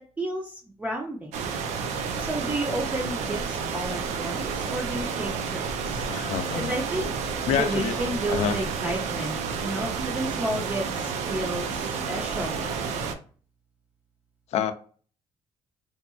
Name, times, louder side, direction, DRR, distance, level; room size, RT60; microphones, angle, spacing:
voice 1, 0.0-1.3 2.2-6.1 6.5-7.1 7.5-13.0, right 1 dB, 15° right, 0.4 m, -32 dB
sound 1, 1.3-13.1, right 5 dB, 80° right, 0.5 m, -30 dB
voice 2, 6.1-6.7 7.5-8.0 8.3-8.6 14.5-14.7, left 8 dB, 70° left, 0.4 m, -27 dB
2.8 x 2.3 x 2.4 m
cardioid pair, 125°, 12 cm